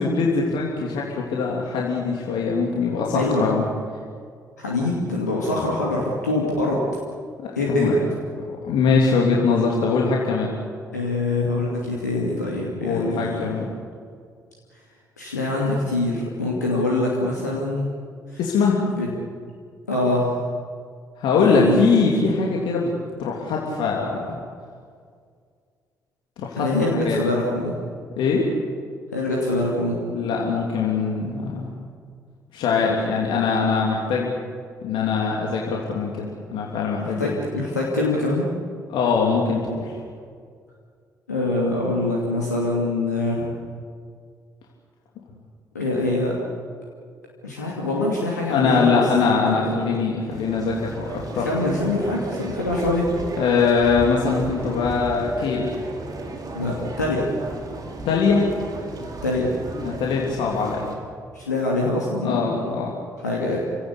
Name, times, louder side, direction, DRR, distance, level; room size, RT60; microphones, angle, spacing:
voice 1, 0.0-3.7 7.4-7.9 8.6-10.5 12.8-13.7 18.4-18.8 21.2-22.9 23.2-24.4 26.4-26.7 27.0-27.2 28.2-28.5 30.1-31.7 32.5-34.3 34.8-36.2 36.5-37.4 38.9-40.0 48.5-51.5 53.4-55.8 58.0-58.4 59.8-60.8 62.2-62.9, left 5 dB, 65° left, -2 dB, 3.3 m, -22 dB
voice 2, 3.1-3.5 4.6-6.8 7.5-8.0 10.9-13.5 15.2-17.8 18.3-18.4 18.9-19.1 19.9-20.4 21.4-22.1 26.6-27.8 29.1-30.0 37.0-38.5 41.3-43.5 45.7-46.4 47.4-49.8 51.3-53.1 56.5-57.3 59.2-59.5 61.3-62.5 63.2-63.6, left 2 dB, 85° left, -3 dB, 2.7 m, -24 dB
sound 1, 50.3-61.0, right 2 dB, 45° right, 4.4 m, -35 dB
30.0 x 17.0 x 8.5 m, 2.1 s
figure-of-eight pair, 45°, 9 cm